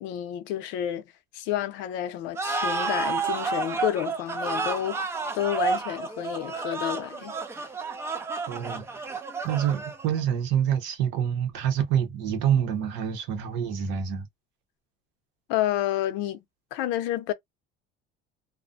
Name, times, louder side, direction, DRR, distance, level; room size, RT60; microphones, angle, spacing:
voice 1, 0.0-7.4 15.5-16.4 16.7-17.3, left 12 dB, 70° left, 0.6 m, -30 dB
sound 1, 2.4-10.2, right 4 dB, 15° right, 0.3 m, -30 dB
voice 2, 8.5-9.1 9.4-14.3, right 9 dB, 70° right, 0.9 m, -27 dB
2.4 x 2.1 x 2.5 m
cardioid pair, 160°, 20 cm